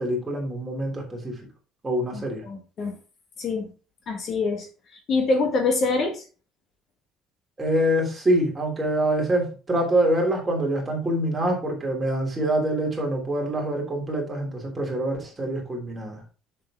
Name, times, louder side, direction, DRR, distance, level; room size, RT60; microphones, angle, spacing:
voice 1, 0.0-1.3 1.8-2.4 7.6-16.2, right 1 dB, 15° right, 0 dB, 3.1 m, -25 dB
voice 2, 2.1-3.0 3.4-3.7 4.1-4.7 4.9-6.2, left 3 dB, 40° left, 4 dB, 1.7 m, -25 dB
7.4 x 6.8 x 3.7 m, 0.34 s
cardioid pair, 150°, 0 cm